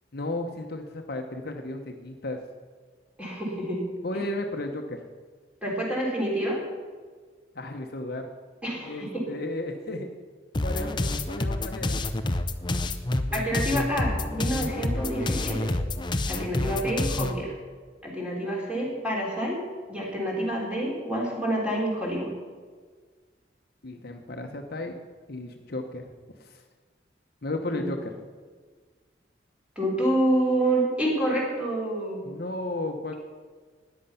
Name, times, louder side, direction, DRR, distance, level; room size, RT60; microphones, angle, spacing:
voice 1, 0.1-2.4 4.0-5.0 7.5-8.3 8.8-10.1 10.6-12.0 23.8-24.9 25.3-26.0 26.4-26.6 27.4-28.1 32.2-33.1, left 2 dB, 55° left, 4 dB, 1.0 m, -34 dB
voice 2, 3.2-3.8 5.6-6.6 8.6-9.1 13.3-15.7 16.3-17.5 18.0-19.6 19.9-22.3 27.7-27.9 29.7-32.2, right 1 dB, 5° right, -3 dB, 3.5 m, -28 dB
sound 1, 10.5-17.4, left 2 dB, 25° left, 0.6 m, -28 dB
13.5 x 9.9 x 5.7 m, 1.5 s
head